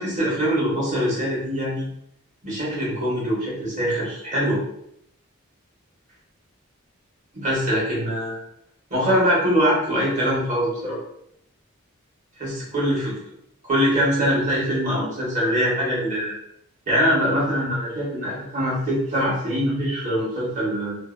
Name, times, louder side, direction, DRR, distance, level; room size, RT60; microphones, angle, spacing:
voice 1, 0.0-1.9 2.4-4.6 7.3-8.4 8.9-11.0 12.4-13.1 13.6-16.3 16.9-21.0, equal, 35° right, -6 dB, 1.1 m, -23 dB
2.6 x 2.1 x 2.4 m, 0.73 s
head